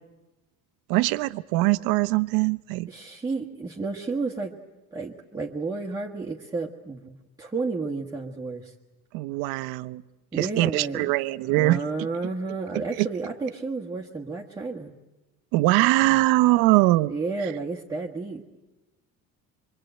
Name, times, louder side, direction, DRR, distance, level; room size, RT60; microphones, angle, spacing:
voice 1, 0.9-2.9 9.1-10.0 10.3-11.8 12.7-13.1 15.5-17.1, right 19 dB, 85° right, 13 dB, 0.9 m, -22 dB
voice 2, 2.9-4.6 4.9-8.7 10.3-11.1 11.5-14.9 17.1-18.5, right 3 dB, 10° right, -3 dB, 1.4 m, -31 dB
25.5 x 24.0 x 9.1 m, 1.1 s
cardioid pair, 155°, 35 cm